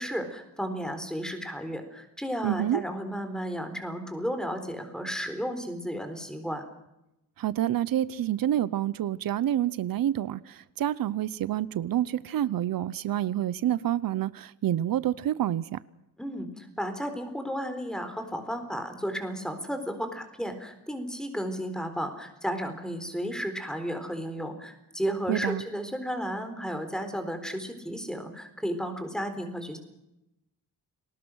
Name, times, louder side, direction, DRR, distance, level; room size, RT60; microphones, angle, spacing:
voice 1, 0.0-6.6 16.2-29.8, equal, ahead, 4.1 m, -33 dB
voice 2, 2.4-2.8 7.4-15.8 25.3-25.6, right 12 dB, 80° right, 0.7 m, -28 dB
29.5 x 20.0 x 6.3 m
wide cardioid pair, 125°, 34 cm